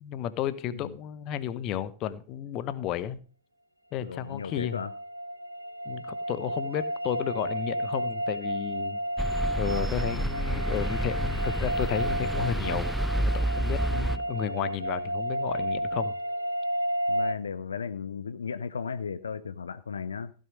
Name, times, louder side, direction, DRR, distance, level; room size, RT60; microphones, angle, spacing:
voice 1, 0.0-3.2 3.9-4.8 5.8-9.0 9.6-16.1, left 10 dB, 40° left, 0.9 m, -33 dB
voice 2, 4.0-4.9 17.1-20.3, left 6 dB, 70° left, 0.5 m, -35 dB
sound 1, 4.2-17.3, right 1 dB, 85° right, 0.4 m, -32 dB
sound 2, 9.2-14.2, right 1 dB, 5° right, 0.6 m, -29 dB
15.5 x 6.5 x 5.2 m
figure-of-eight pair, 90°, 0 cm